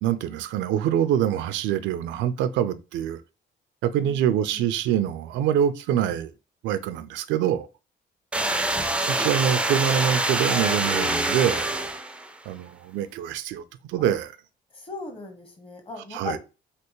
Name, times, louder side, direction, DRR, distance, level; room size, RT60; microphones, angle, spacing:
voice 1, 0.0-3.2 3.8-6.3 6.6-7.7 9.1-11.7 12.5-14.3 16.1-16.4, right 10 dB, 90° right, 0.4 m, -25 dB
voice 2, 4.0-4.7 8.4-8.7 14.0-14.1 14.7-16.4, left 3 dB, 30° left, 1.0 m, -38 dB
sound 1, 8.3-12.3, right 2 dB, 5° right, 0.3 m, -25 dB
3.3 x 2.8 x 3.0 m
cardioid pair, 115°, 19 cm